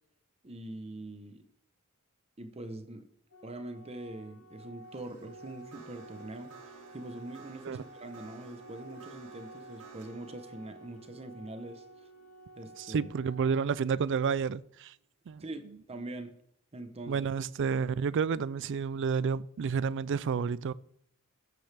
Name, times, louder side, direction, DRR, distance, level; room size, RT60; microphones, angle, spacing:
voice 1, 0.4-1.4 2.4-3.1 3.4-12.1 12.6-13.1 15.4-16.4 16.7-17.3, right 2 dB, 30° right, 0.9 m, -43 dB
Organ, 3.3-14.3, right 2 dB, 80° left, 1.7 m, -52 dB
sound 1, 4.8-14.1, right 4 dB, 75° right, 2.6 m, -56 dB
voice 2, 12.8-14.9 15.3-15.4 17.1-20.7, right 6 dB, 55° right, 0.4 m, -30 dB
13.5 x 9.0 x 3.4 m
head